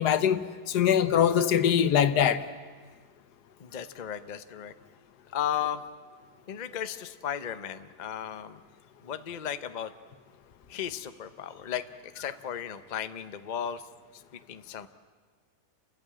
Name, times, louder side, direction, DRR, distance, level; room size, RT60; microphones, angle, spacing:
voice 1, 0.0-2.4, left 9 dB, 80° left, 1.5 m, -23 dB
voice 2, 3.6-4.7 5.3-5.8 6.5-8.6 9.0-9.9 10.7-11.8 12.1-13.8 14.5-14.9, left 9 dB, 40° left, 0.7 m, -35 dB
29.5 x 14.0 x 8.5 m
omnidirectional pair, 1.7 m